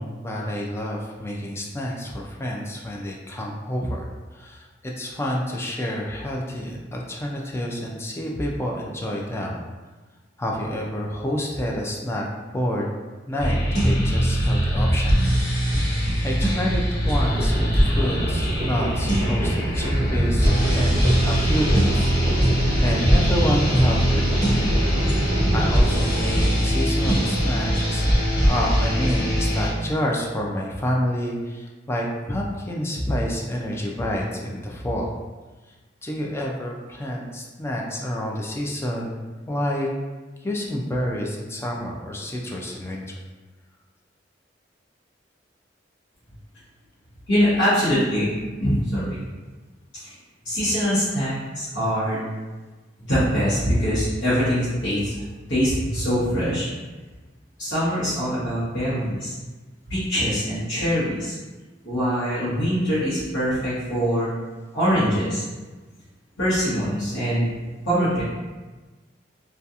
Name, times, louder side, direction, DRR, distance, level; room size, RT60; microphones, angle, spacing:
voice 1, 0.0-9.6 10.4-12.3 12.5-12.9 13.3-15.9 16.2-24.2 25.5-28.1 28.4-35.1 36.0-39.2 39.5-39.9 40.4-43.1, equal, 15° left, -1 dB, 0.3 m, -28 dB
sound 1, 13.4-29.7, equal, 60° left, 1.1 m, -21 dB
sound 2, 17.0-26.5, right 1 dB, 35° right, 0.6 m, -28 dB
voice 2, 47.3-48.3 48.6-49.2 50.0-50.1 50.4-52.2 53.1-55.2 55.5-56.7 57.6-59.3 59.9-61.3 61.8-64.3 64.7-65.4 66.4-67.6 67.8-68.2, equal, 90° left, -13 dB, 0.9 m, -23 dB
2.7 x 2.3 x 2.4 m, 1.3 s
head